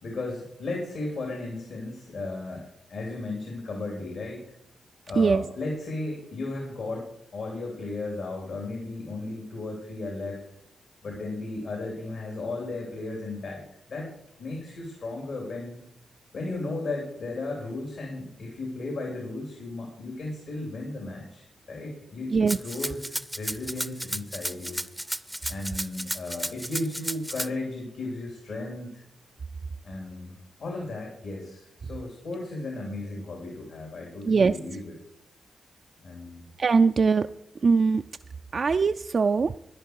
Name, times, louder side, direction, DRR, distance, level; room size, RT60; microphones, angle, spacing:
voice 1, 0.0-4.4 5.1-7.1 7.3-10.4 11.0-13.6 13.9-14.1 14.4-15.8 16.3-24.8 25.5-29.0 29.8-35.0 36.0-36.4, left 2 dB, 75° left, 0 dB, 3.1 m, -35 dB
Rattle (instrument), 22.5-27.5, right 1 dB, 5° right, 0.6 m, -33 dB
voice 2, 36.6-37.2 37.6-38.0 38.5-39.5, right 5 dB, 55° right, 8 dB, 0.4 m, -21 dB
12.0 x 10.5 x 4.6 m, 0.76 s
cardioid pair, 70°, 0 cm